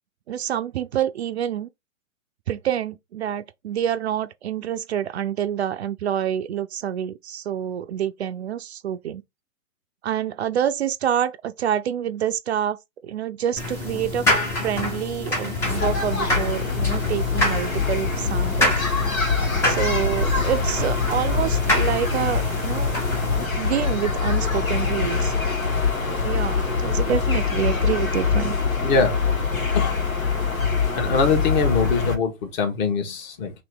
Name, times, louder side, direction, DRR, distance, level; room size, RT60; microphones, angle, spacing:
voice 1, 0.3-1.7 2.5-9.2 10.0-12.8 13.0-14.3 14.6-18.7 19.6-23.0 23.4-25.3 26.2-28.6 30.6-30.7, right 10 dB, 55° right, 0.5 m, -27 dB
sound 1, 13.6-23.5, left 1 dB, 5° left, 0.5 m, -26 dB
sound 2, 15.6-32.2, left 5 dB, 80° left, 1.7 m, -24 dB
voice 2, 28.8-29.2 29.7-30.0 30.9-33.5, left 4 dB, 35° left, 1.1 m, -23 dB
3.1 x 3.0 x 4.6 m
figure-of-eight pair, 120°, 41 cm